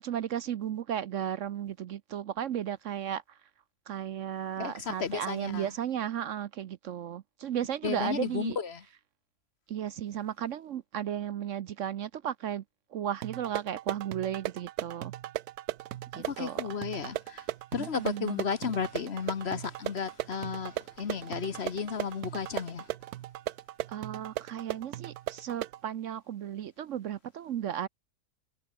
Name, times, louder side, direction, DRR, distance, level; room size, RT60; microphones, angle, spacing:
voice 1, 0.0-3.4 3.9-8.6 9.7-12.6 12.9-15.1 16.1-16.7 17.8-18.4 23.9-27.9, right 10 dB, 65° right, 0.9 m, -35 dB
voice 2, 4.6-5.6 7.8-8.8 16.1-17.5 17.7-22.9, left 6 dB, 50° left, 1.2 m, -33 dB
sound 1, 13.2-25.8, right 14 dB, 90° right, 1.2 m, -38 dB
omnidirectional pair, 1.6 m